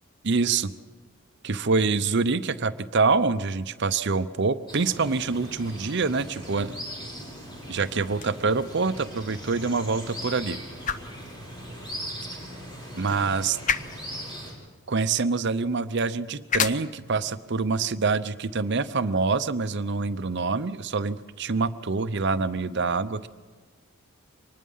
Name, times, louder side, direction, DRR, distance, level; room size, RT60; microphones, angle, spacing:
voice 1, 0.2-0.7 1.4-6.7 7.7-10.6 12.9-13.6 14.9-23.3, right 4 dB, 55° right, 12 dB, 0.7 m, -26 dB
sound 1, 4.7-14.5, equal, 20° left, 5.3 m, -39 dB
sound 2, 10.7-20.1, left 7 dB, 35° left, 0.6 m, -36 dB
24.0 x 19.5 x 5.6 m, 1.4 s
head